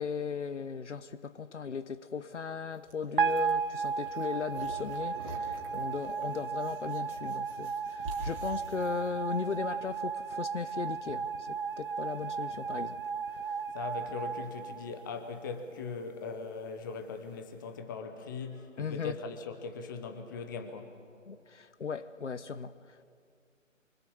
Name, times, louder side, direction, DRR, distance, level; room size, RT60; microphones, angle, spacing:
voice 1, 0.0-13.0 18.8-19.2 21.3-23.0, left 5 dB, 65° left, 0.9 m, -37 dB
sound 1, 2.7-9.6, right 1 dB, 25° right, 2.6 m, -46 dB
sound 2, 3.2-15.5, right 6 dB, 40° right, 0.6 m, -35 dB
voice 2, 13.7-21.0, left 4 dB, 15° left, 0.9 m, -40 dB
24.5 x 24.5 x 7.1 m
figure-of-eight pair, 150°, 39 cm